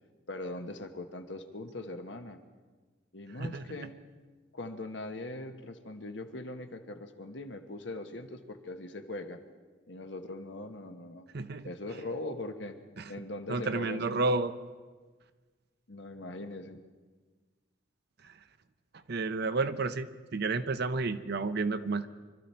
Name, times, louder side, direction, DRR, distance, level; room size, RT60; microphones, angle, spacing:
voice 1, 0.3-2.4 3.1-3.9 4.5-9.4 9.9-11.3 11.6-12.8 13.1-14.2 15.9-16.8, left 2 dB, 65° left, 6 dB, 1.2 m, -41 dB
voice 2, 11.3-11.7 13.0-13.1 13.5-14.5 19.1-22.1, right 3 dB, 60° right, 11 dB, 0.7 m, -31 dB
24.5 x 13.0 x 4.4 m, 1.4 s
head